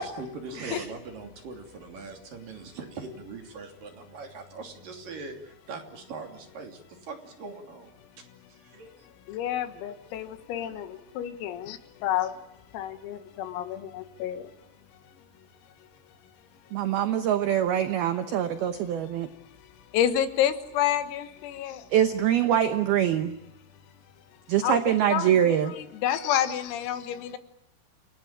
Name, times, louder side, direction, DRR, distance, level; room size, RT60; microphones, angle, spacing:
voice 1, 0.0-8.0 8.5-9.1, right 4 dB, 45° right, 4.1 m, -41 dB
voice 2, 9.3-12.4 12.7-14.5 19.9-21.9 24.6-24.8 25.1-27.4, left 11 dB, 80° left, 4.2 m, -29 dB
voice 3, 16.7-19.3 21.9-23.3 24.5-25.7, right 10 dB, 85° right, 2.2 m, -24 dB
29.0 x 19.0 x 8.9 m
omnidirectional pair, 6.0 m